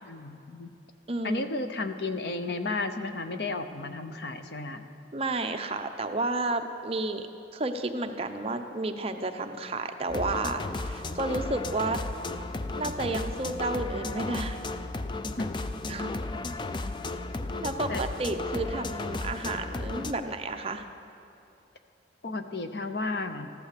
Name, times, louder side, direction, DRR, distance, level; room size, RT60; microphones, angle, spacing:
voice 1, 0.0-0.7 1.2-4.8 15.4-15.5 17.9-18.0 22.2-23.5, left 3 dB, 60° left, 8 dB, 0.8 m, -33 dB
voice 2, 1.1-1.5 5.1-7.3 7.5-12.0 12.8-14.6 15.9-16.2 17.6-20.9, right 2 dB, 30° right, 6 dB, 0.7 m, -31 dB
sound 1, 10.1-20.1, left 2 dB, 25° left, 0.4 m, -34 dB
14.5 x 11.5 x 6.8 m, 2.9 s
head